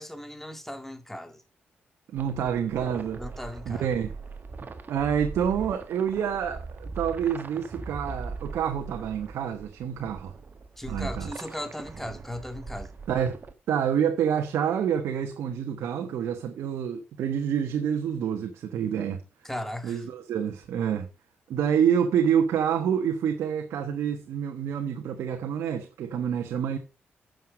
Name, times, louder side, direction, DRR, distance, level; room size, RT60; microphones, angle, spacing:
voice 1, 0.0-1.4 3.2-3.9 10.8-12.9 19.4-20.0, left 1 dB, 5° left, 2.0 m, -37 dB
sound 1, 2.1-13.5, right 4 dB, 45° right, 1.7 m, -40 dB
voice 2, 2.1-3.2 3.7-4.1 4.9-10.3 10.9-11.3 13.1-13.4 13.7-19.2 19.8-21.1 21.5-26.8, right 8 dB, 80° right, 1.2 m, -27 dB
9.4 x 6.7 x 5.3 m
cardioid pair, 60°, 4 cm